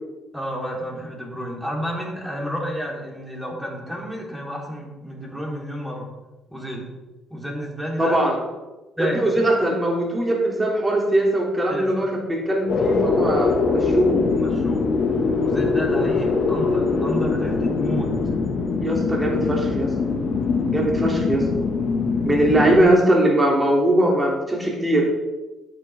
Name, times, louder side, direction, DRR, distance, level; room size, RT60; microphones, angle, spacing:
voice 1, 0.3-6.1 6.5-6.9 7.3-8.2 9.0-9.3 11.7-11.9 14.1-14.9 15.4-18.1 22.3-22.5, equal, ahead, -3 dB, 4.0 m, -31 dB
voice 2, 8.0-8.4 9.0-14.2 18.8-19.9 20.7-21.5 22.2-25.1, right 1 dB, 20° right, -2 dB, 3.0 m, -20 dB
sound 1, 12.7-22.8, left 4 dB, 50° left, 2.1 m, -22 dB
12.5 x 9.2 x 3.7 m, 1.1 s
cardioid pair, 85°, 0 cm